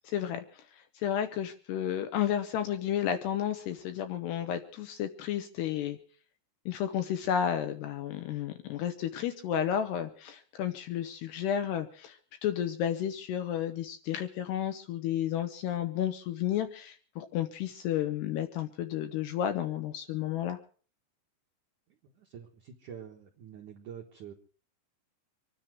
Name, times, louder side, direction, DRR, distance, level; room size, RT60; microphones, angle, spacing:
voice 1, 0.0-0.4 1.0-6.0 6.7-20.6, left 10 dB, 75° left, 8 dB, 2.6 m, -32 dB
voice 2, 22.0-24.3, right 8 dB, 65° right, 0 dB, 2.0 m, -47 dB
25.5 x 10.0 x 4.7 m, 0.42 s
omnidirectional pair, 5.7 m